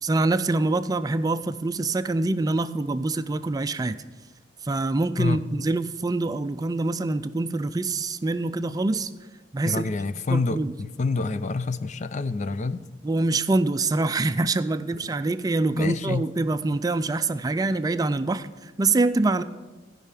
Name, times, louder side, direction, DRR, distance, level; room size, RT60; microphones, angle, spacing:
voice 1, 0.0-4.0 4.6-9.1 9.5-9.9 10.3-10.7 13.0-19.4, right 2 dB, 20° right, 0.4 m, -25 dB
voice 2, 9.6-12.8 15.3-15.4 15.7-16.3, left 3 dB, 45° left, 0.5 m, -27 dB
14.5 x 5.6 x 8.3 m
head